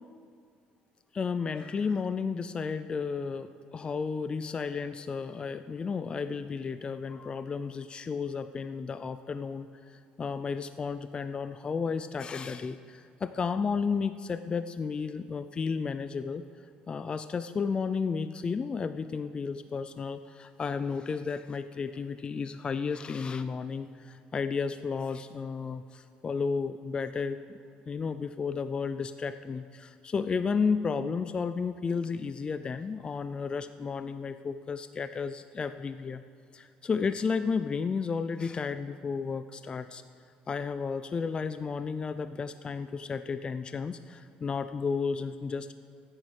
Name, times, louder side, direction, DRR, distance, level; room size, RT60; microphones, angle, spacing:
voice 1, 1.1-16.4 16.9-27.4 27.9-36.2 36.5-40.0 40.5-45.7, left 5 dB, 30° left, 12 dB, 0.4 m, -33 dB
15.5 x 8.9 x 6.4 m, 2.2 s
cardioid pair, 110°, 3 cm